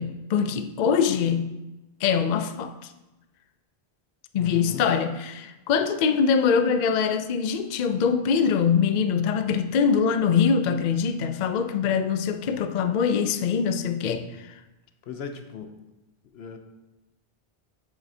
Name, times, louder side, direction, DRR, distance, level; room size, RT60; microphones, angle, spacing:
voice 1, 0.0-1.5 2.0-2.9 4.3-14.5, left 6 dB, 55° left, 9 dB, 0.5 m, -23 dB
voice 2, 4.4-4.9 15.0-15.7 16.3-16.6, left 6 dB, 80° left, 7 dB, 0.9 m, -37 dB
8.1 x 7.4 x 2.7 m, 1.0 s
omnidirectional pair, 1.1 m